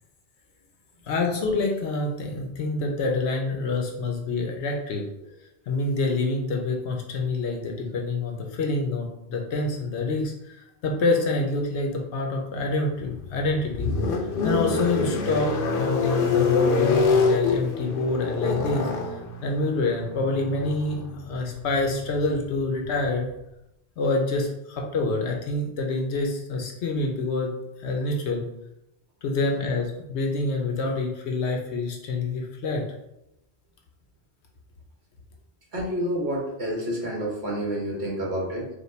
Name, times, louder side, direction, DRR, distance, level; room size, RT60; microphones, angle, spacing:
voice 1, 1.1-5.1 5.7-14.0 14.4-15.5 15.8-18.9 19.4-21.0 21.3-23.3 24.0-27.5 27.8-28.5 29.2-32.8, left 3 dB, 85° left, 1 dB, 1.0 m, -27 dB
sound 1, 13.0-23.3, left 4 dB, 60° left, 0.7 m, -26 dB
voice 2, 35.7-38.7, equal, 70° right, -2 dB, 1.5 m, -29 dB
5.2 x 2.2 x 3.2 m, 0.87 s
omnidirectional pair, 1.1 m